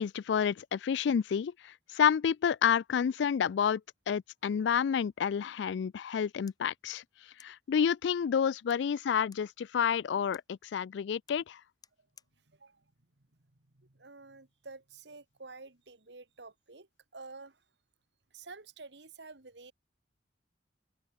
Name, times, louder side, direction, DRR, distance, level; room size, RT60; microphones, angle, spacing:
voice 1, 0.0-3.8 4.1-7.0 7.4-11.6, left 7 dB, 75° left, 0.3 m, -29 dB
sound 1, 6.4-14.1, left 6 dB, 20° left, 2.5 m, -66 dB
voice 2, 12.5-12.8 13.7-16.9 17.1-17.6 18.3-19.7, right 3 dB, 75° right, 1.8 m, -50 dB
head